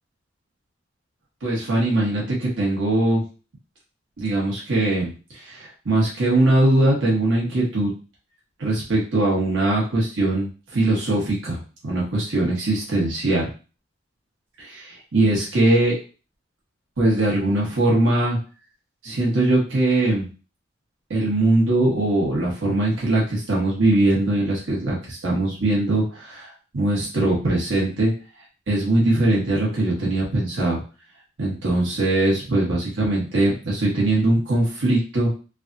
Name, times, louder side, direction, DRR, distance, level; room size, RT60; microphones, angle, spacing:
voice 1, 1.4-3.2 4.2-7.9 8.6-13.5 14.6-16.0 17.0-18.4 19.0-20.3 21.1-28.1 28.7-30.8 31.4-35.4, right 2 dB, 80° right, -5 dB, 1.2 m, -21 dB
3.4 x 2.3 x 2.6 m, 0.35 s
head